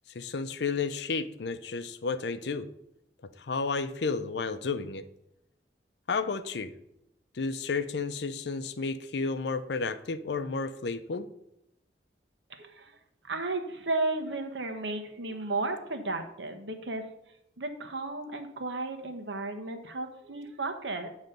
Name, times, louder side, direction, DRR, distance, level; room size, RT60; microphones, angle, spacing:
voice 1, 0.1-2.7 3.4-5.0 6.1-6.7 7.3-11.3, left 4 dB, 70° left, 11 dB, 0.5 m, -32 dB
voice 2, 12.5-12.9 13.3-17.1 17.6-21.1, right 2 dB, 85° right, 6 dB, 1.0 m, -34 dB
8.9 x 3.1 x 6.5 m, 0.82 s
head